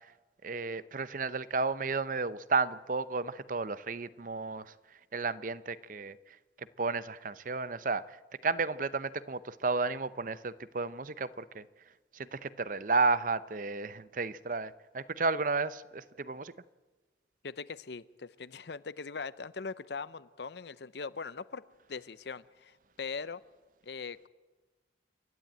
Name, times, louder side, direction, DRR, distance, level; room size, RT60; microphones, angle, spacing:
voice 1, 0.4-4.7 5.1-6.2 6.6-8.2 8.4-11.7 12.1-16.5, right 4 dB, 45° right, 16 dB, 0.6 m, -32 dB
voice 2, 17.4-21.6 21.9-23.4 23.8-24.3, left 5 dB, 65° left, 17 dB, 0.6 m, -41 dB
28.5 x 12.0 x 8.9 m, 1.3 s
head